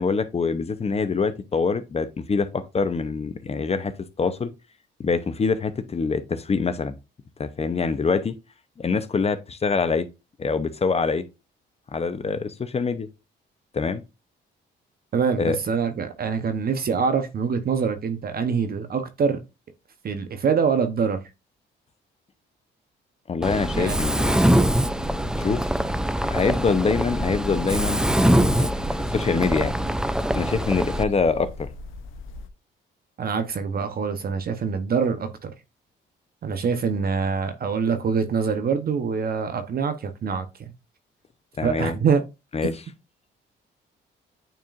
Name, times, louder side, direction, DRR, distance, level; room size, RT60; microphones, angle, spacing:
voice 1, 0.0-4.5 5.0-6.9 7.4-8.3 8.8-10.1 10.4-11.2 11.9-13.1 13.7-14.0 15.4-15.6 23.3-24.4 25.4-25.7 26.3-28.7 29.1-29.7 30.3-31.7 41.6-41.9 42.5-42.7, left 5 dB, 30° left, 0.7 m, -25 dB
voice 2, 15.1-19.4 20.0-21.2 23.7-24.0 33.2-35.5 36.4-40.5 41.6-42.2, right 6 dB, 50° right, 0.9 m, -24 dB
Mechanisms, 23.4-31.0, right 1 dB, 5° right, 0.4 m, -23 dB
sound 1, 24.6-32.5, left 5 dB, 85° left, 0.7 m, -39 dB
9.0 x 4.5 x 2.5 m
cardioid pair, 90°, 20 cm